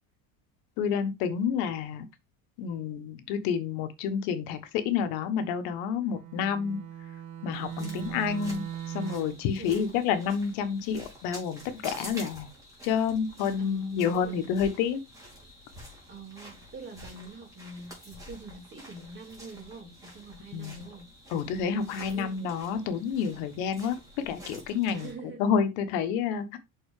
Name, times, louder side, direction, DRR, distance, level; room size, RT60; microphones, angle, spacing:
voice 1, 0.8-2.0 2.6-6.8 7.4-12.5 12.8-15.0 20.5-20.8 21.3-25.1 25.4-26.6, left 7 dB, 75° left, 1.3 m, -29 dB
Bowed string instrument, 6.1-9.5, right 10 dB, 55° right, 1.6 m, -39 dB
sound 1, 7.5-25.1, equal, 10° right, 3.1 m, -48 dB
voice 2, 7.7-8.1 9.6-10.0 13.4-14.7 16.1-21.1 22.1-22.4 24.9-25.4, right 4 dB, 30° right, 2.7 m, -45 dB
6.6 x 4.3 x 4.8 m
cardioid pair, 155°, 37 cm